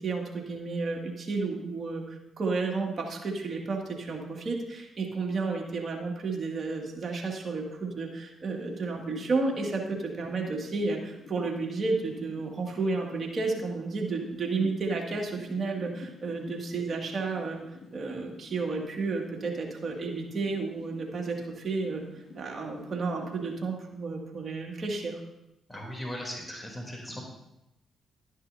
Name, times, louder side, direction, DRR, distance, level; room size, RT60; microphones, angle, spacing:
voice 1, 0.0-17.6 17.9-25.2, right 3 dB, 50° right, 0 dB, 2.2 m, -32 dB
sound 1, 8.5-23.6, left 3 dB, 60° left, 1.9 m, -49 dB
voice 2, 25.7-27.2, equal, 10° left, -1 dB, 3.2 m, -38 dB
11.5 x 10.0 x 2.7 m, 0.88 s
hypercardioid pair, 50°, 0 cm